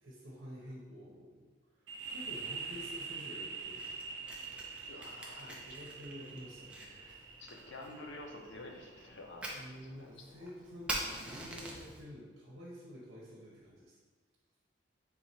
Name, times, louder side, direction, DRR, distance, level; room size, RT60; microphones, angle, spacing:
voice 1, 0.0-3.9 4.2-4.5 5.3-7.3 9.5-14.0, equal, 90° right, -6 dB, 0.8 m, -50 dB
sound 1, 1.9-9.3, right 4 dB, 65° right, 0.4 m, -45 dB
Fire, 3.6-12.0, right 1 dB, 5° right, 0.4 m, -46 dB
voice 2, 4.9-5.6 7.4-9.5 10.0-10.5, left 2 dB, 65° left, 2 dB, 0.6 m, -49 dB
3.6 x 3.0 x 4.2 m, 1.4 s
head